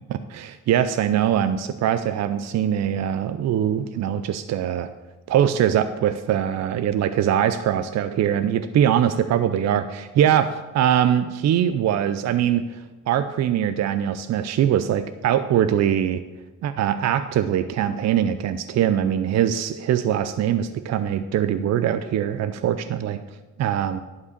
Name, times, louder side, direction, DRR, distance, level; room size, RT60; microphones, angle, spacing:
voice 1, 0.3-4.9 5.3-16.2 16.6-23.2 23.6-24.0, right 10 dB, 60° right, 11 dB, 0.5 m, -22 dB
11.5 x 4.8 x 6.5 m, 1.2 s
cardioid pair, 90°, 30 cm